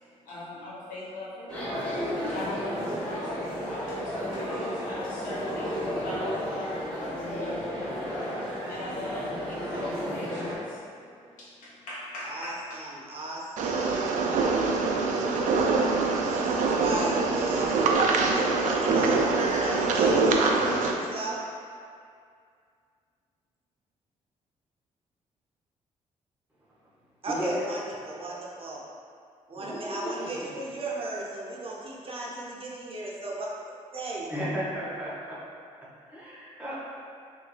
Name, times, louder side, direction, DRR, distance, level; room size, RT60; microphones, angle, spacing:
voice 1, 0.0-12.8, left 1 dB, 80° left, -8 dB, 1.0 m, -40 dB
sound 1, 1.5-10.6, equal, 10° left, 1.3 m, -33 dB
voice 2, 12.2-14.1 16.1-21.4 27.2-28.8 29.5-33.5 33.9-34.3, right 2 dB, 45° right, -4 dB, 0.7 m, -36 dB
sound 2, 13.6-20.9, right 3 dB, 75° right, 0.4 m, -24 dB
voice 3, 27.2-27.6 29.5-30.5 34.3-35.1 36.0-36.7, equal, 10° right, -8 dB, 1.1 m, -33 dB
3.5 x 2.6 x 3.2 m, 2.2 s
cardioid pair, 85°, 13 cm